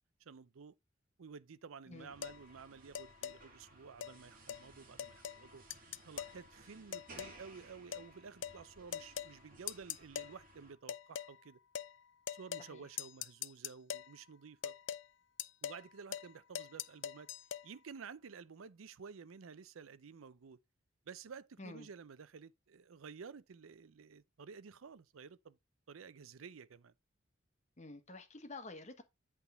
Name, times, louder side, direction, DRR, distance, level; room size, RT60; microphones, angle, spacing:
voice 1, 0.2-0.8 1.2-5.6 6.1-11.6 12.3-14.8 15.6-17.3 17.6-20.6 21.1-25.6 25.9-26.9, right 5 dB, 80° right, 0.5 m, -52 dB
sound 1, 2.0-10.7, right 2 dB, 45° right, 2.5 m, -59 dB
sound 2, 2.2-2.4 3.0-3.4 4.0-4.2 4.5-4.6 5.0-5.4 5.7-6.4 6.9-7.4 7.9-8.1 8.4-8.6 8.9-9.3 9.7-10.3 10.9-11.3 11.8-11.9 12.3-12.7 13.0-14.1 14.6-15.1 15.4-15.8 16.1-16.3 16.6-17.7, left 9 dB, 60° left, 0.5 m, -42 dB
voice 2, 27.8-29.0, left 2 dB, 35° left, 1.2 m, -49 dB
8.4 x 3.6 x 5.4 m
head